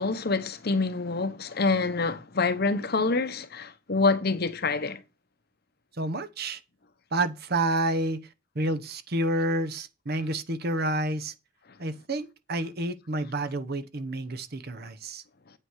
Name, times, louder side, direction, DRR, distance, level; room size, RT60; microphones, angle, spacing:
voice 1, 0.0-5.0, left 3 dB, 50° left, 0.9 m, -26 dB
voice 2, 6.0-6.6 7.1-8.2 8.5-11.3 11.8-15.2, right 1 dB, 50° right, 0.9 m, -29 dB
8.8 x 8.4 x 4.7 m
head